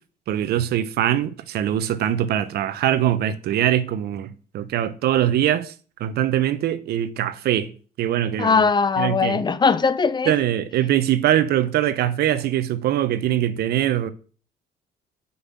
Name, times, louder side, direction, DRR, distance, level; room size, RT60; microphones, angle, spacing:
voice 1, 0.3-5.7 6.0-7.7 8.0-8.7 9.0-9.4 10.3-14.1, right 11 dB, 70° right, 1.0 m, -22 dB
voice 2, 8.4-10.3, left 5 dB, 25° left, 0.7 m, -20 dB
7.9 x 5.7 x 7.1 m
cardioid pair, 110°, 17 cm